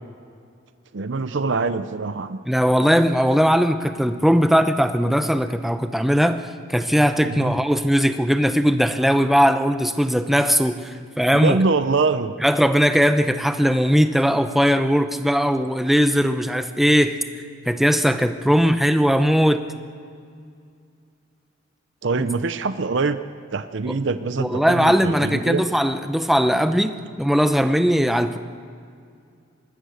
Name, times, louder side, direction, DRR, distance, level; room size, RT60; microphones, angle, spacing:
voice 1, 0.9-2.4 7.2-7.6 11.3-12.4 22.0-23.2 23.5-25.6, right 4 dB, 65° right, 11 dB, 0.6 m, -24 dB
voice 2, 2.5-6.4 6.7-11.6 12.4-17.2 17.7-19.7 23.9-24.0 24.4-28.4, equal, ahead, 8 dB, 0.8 m, -19 dB
24.5 x 20.5 x 6.5 m, 2.3 s
head